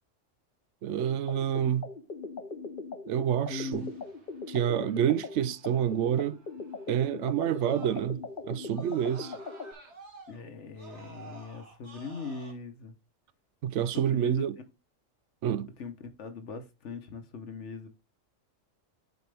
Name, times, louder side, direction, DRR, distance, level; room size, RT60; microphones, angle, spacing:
voice 1, 0.8-1.9 3.1-3.9 4.5-6.4 6.9-9.4 13.6-14.6 15.4-15.7, right 10 dB, 70° right, 0.9 m, -28 dB
sound 1, 1.0-9.7, left 4 dB, 45° left, 1.0 m, -40 dB
voice 2, 3.5-4.0 10.3-12.9 13.9-14.4 15.8-17.9, left 4 dB, 65° left, 1.3 m, -40 dB
Screaming, 3.7-8.3 8.7-12.5, right 3 dB, 55° right, 2.2 m, -52 dB
9.2 x 4.3 x 3.4 m
omnidirectional pair, 1.3 m